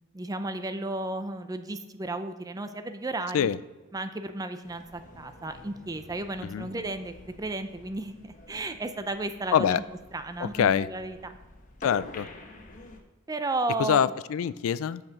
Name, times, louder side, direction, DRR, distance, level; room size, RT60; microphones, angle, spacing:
voice 1, 0.1-3.5 3.9-9.8 10.1-11.3 13.3-14.0, right 2 dB, 15° right, 9 dB, 0.5 m, -33 dB
sound 1, 4.6-13.0, left 2 dB, 40° left, 1.0 m, -48 dB
voice 2, 10.4-10.9 11.8-12.3 13.8-15.0, left 8 dB, 75° left, 17 dB, 0.3 m, -25 dB
6.7 x 6.2 x 5.8 m, 1.2 s
head